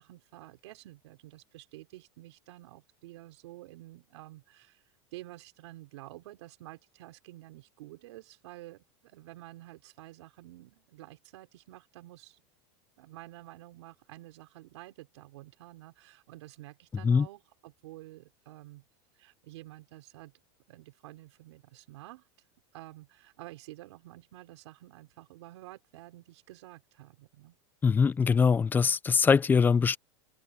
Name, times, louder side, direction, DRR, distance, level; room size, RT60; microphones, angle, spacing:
voice 1, 0.0-12.4 13.0-18.9 19.1-20.3 20.7-22.3 22.7-27.6, right 17 dB, 75° right, 5.3 m, -50 dB
voice 2, 27.8-30.0, left 5 dB, 15° left, 0.4 m, -23 dB
supercardioid pair, 140°, 14 cm